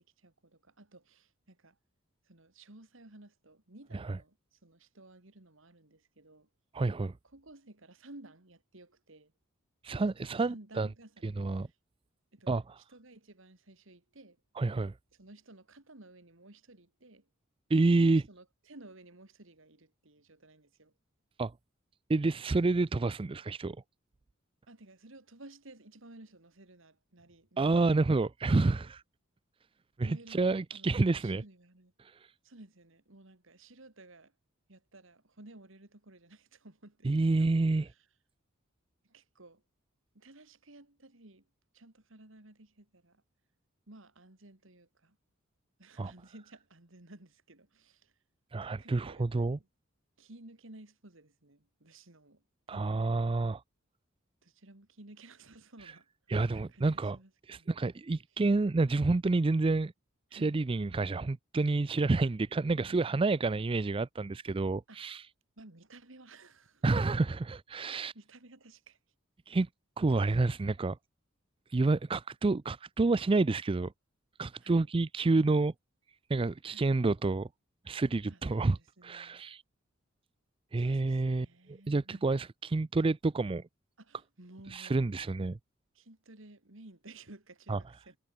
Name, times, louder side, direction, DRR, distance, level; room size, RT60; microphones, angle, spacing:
voice 1, 0.0-1.8 2.2-6.5 7.2-9.3 10.2-11.8 12.3-12.5 12.8-14.4 15.1-17.3 18.0-20.9 24.7-28.0 28.6-28.9 30.0-30.4 30.7-31.9 32.4-34.3 34.7-37.5 37.8-38.1 39.0-39.6 40.1-41.5 41.7-43.2 43.9-45.2 45.8-48.1 48.8-49.7 50.2-53.0 54.4-56.1 56.4-57.7 60.3-60.6 62.7-63.0 64.9-65.0 65.6-66.8 67.8-69.0 74.6-74.9 76.7-77.1 78.3-79.4 80.8-82.4 84.0-85.2 85.9-88.2, right 2 dB, 70° right, 2.7 m, -55 dB
voice 2, 6.7-7.1 9.8-10.9 11.2-11.7 12.5-12.8 14.6-14.9 17.7-18.2 21.4-21.5 22.1-23.8 27.6-29.0 30.0-31.4 32.0-32.2 37.0-37.9 46.0-46.1 48.5-49.6 52.7-53.6 56.3-57.2 57.5-59.9 60.3-65.2 66.8-68.1 69.5-69.7 70.0-71.0 71.7-73.9 74.4-75.7 76.3-77.5 77.9-78.8 79.0-79.6 80.7-83.6 84.7-85.6 87.7-87.8, right 3 dB, 25° right, 0.4 m, -29 dB
head